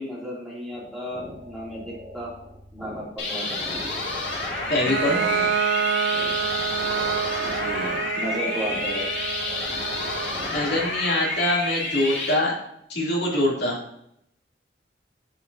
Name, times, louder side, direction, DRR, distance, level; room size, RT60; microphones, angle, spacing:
voice 1, 0.0-2.3 2.7-3.8 4.9-5.4 7.4-9.1, equal, ahead, -6 dB, 2.8 m, -34 dB
sound 1, 0.7-10.5, equal, 20° right, 1.9 m, -43 dB
sound 2, 3.2-12.3, left 3 dB, 85° left, 2.5 m, -29 dB
voice 2, 4.7-5.2 10.0-10.1 10.5-12.5 12.9-13.8, left 1 dB, 65° left, -4 dB, 3.0 m, -24 dB
Bowed string instrument, 4.9-10.5, right 8 dB, 85° right, 0.3 m, -28 dB
9.6 x 8.3 x 2.8 m, 0.73 s
head